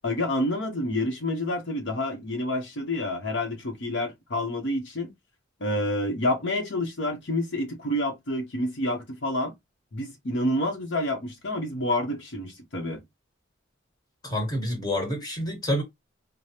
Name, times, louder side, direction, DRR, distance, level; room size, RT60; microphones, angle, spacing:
voice 1, 0.0-5.1 5.6-9.5 9.9-13.0, left 1 dB, 60° left, 0.8 m, -28 dB
voice 2, 14.2-15.8, left 1 dB, 20° left, 1.5 m, -28 dB
4.9 x 2.1 x 2.8 m
head